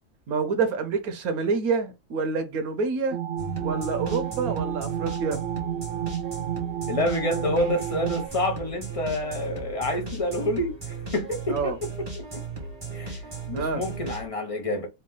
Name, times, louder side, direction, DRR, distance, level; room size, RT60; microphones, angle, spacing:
voice 1, 0.3-3.2 3.6-5.4 11.5-11.8 13.5-13.8, right 4 dB, 90° right, 1.3 m, -27 dB
sound 1, 3.1-8.3, right 10 dB, 70° right, 0.9 m, -31 dB
sound 2, 3.4-14.3, right 4 dB, 20° right, 1.3 m, -36 dB
voice 2, 6.9-10.8 11.1-11.7 12.9-13.2 13.5-14.9, left 1 dB, 40° left, 0.5 m, -27 dB
3.5 x 2.3 x 3.8 m
omnidirectional pair, 1.5 m